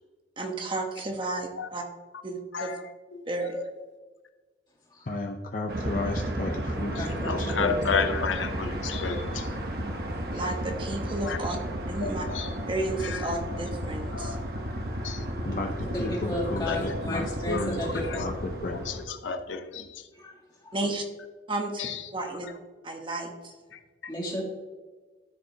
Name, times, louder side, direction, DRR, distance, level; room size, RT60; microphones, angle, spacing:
voice 1, 0.4-1.8 2.2-2.7 3.3-3.6 10.3-11.6 11.9-12.2 12.7-14.4 20.7-21.0 21.5-21.9 22.1-22.5 22.8-23.5, right 2 dB, 25° right, 3 dB, 0.9 m, -32 dB
voice 2, 2.5-4.0 6.0-6.1 6.4-6.6 6.8-9.5 11.2-11.5 12.0-12.6 13.0-13.4 14.1-14.3 15.0-15.3 16.6-18.3 18.6-20.1 21.8-22.1 22.4-22.6 23.7-24.1, left 5 dB, 85° left, 7 dB, 0.6 m, -33 dB
voice 3, 5.1-7.8 15.4-17.3 17.5-19.0, left 2 dB, 45° left, 2 dB, 0.6 m, -34 dB
sound 1, 5.7-19.1, right 1 dB, 55° right, 1.1 m, -33 dB
voice 4, 6.7-8.1 14.9-15.0 15.5-18.1 20.1-20.3 20.6-20.8 22.2-22.3 24.1-24.4, left 1 dB, 20° left, -4 dB, 2.2 m, -34 dB
13.0 x 5.1 x 2.8 m, 1.4 s
head